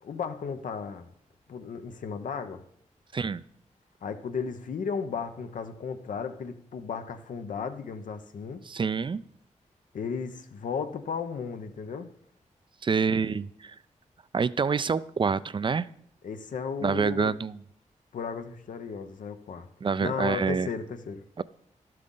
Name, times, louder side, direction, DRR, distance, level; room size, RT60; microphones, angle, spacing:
voice 1, 0.0-1.1 1.5-2.6 4.0-8.6 9.9-12.1 16.2-17.3 18.1-19.7 20.0-21.2, left 6 dB, 85° left, 0.7 m, -35 dB
voice 2, 8.7-9.2 12.8-13.8 14.3-15.9 16.8-17.6 19.8-20.7 21.4-21.5, right 5 dB, 40° right, 0.3 m, -27 dB
11.0 x 7.6 x 3.8 m
cardioid pair, 65°, 13 cm